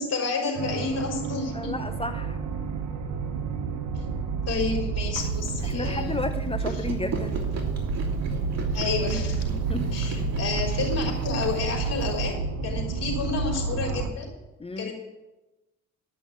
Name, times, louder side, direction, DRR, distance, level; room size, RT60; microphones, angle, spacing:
voice 1, 0.0-1.7 3.9-4.0 4.5-6.3 6.7-6.9 8.7-9.6 9.9-14.3 14.8-14.9, left 4 dB, 55° left, -2 dB, 3.9 m, -30 dB
sound 1, 0.5-14.1, right 5 dB, 90° right, 1.2 m, -29 dB
voice 2, 1.5-2.4 5.6-7.3 9.7-9.9 14.6-14.9, left 3 dB, 20° left, 8 dB, 0.7 m, -32 dB
Chewing mastication, 5.1-12.3, right 4 dB, 60° right, 2.5 m, -39 dB
11.5 x 6.2 x 8.6 m, 1.0 s
cardioid pair, 90°, 30 cm